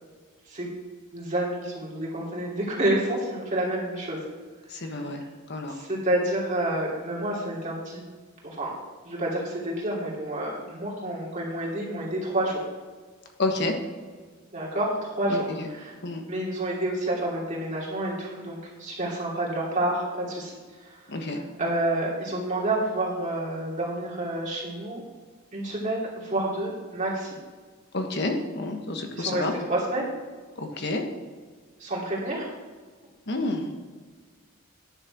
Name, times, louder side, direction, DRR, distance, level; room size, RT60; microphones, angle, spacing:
voice 1, 1.1-4.2 4.7-4.8 5.7-8.0 8.4-8.7 9.0-12.6 14.5-15.4 15.7-15.9 16.3-20.5 20.8-21.0 21.6-25.0 25.5-27.3 29.1-29.4 29.7-30.1 31.8-32.5, right 1 dB, 35° right, -5 dB, 2.9 m, -29 dB
voice 2, 4.7-5.8 13.4-13.8 15.3-15.7 16.0-16.2 21.1-21.4 27.9-29.5 30.6-31.0 33.3-33.7, left 2 dB, 55° left, 4 dB, 1.3 m, -29 dB
10.0 x 6.6 x 6.0 m, 1.5 s
head